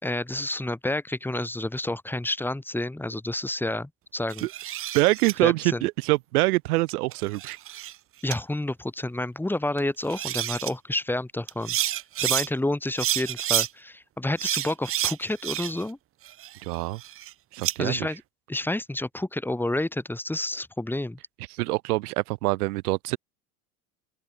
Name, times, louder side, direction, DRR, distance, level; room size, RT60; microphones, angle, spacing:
voice 1, 0.0-4.5 5.4-5.9 8.2-11.8 12.2-16.0 17.8-18.2 18.5-21.2, left 1 dB, 5° left, 2.0 m, -29 dB
sound 1, 4.3-5.3 6.9-7.9 8.3-8.4 9.8-9.9 10.1-10.7 11.5-12.5 12.9-13.7 14.4-15.9 16.2-17.7, right 13 dB, 30° right, 0.6 m, -29 dB
voice 2, 4.9-7.6 16.6-17.0 17.5-18.1 21.6-23.2, right 21 dB, 75° right, 1.0 m, -25 dB
open air
hypercardioid pair, 95°, 45 cm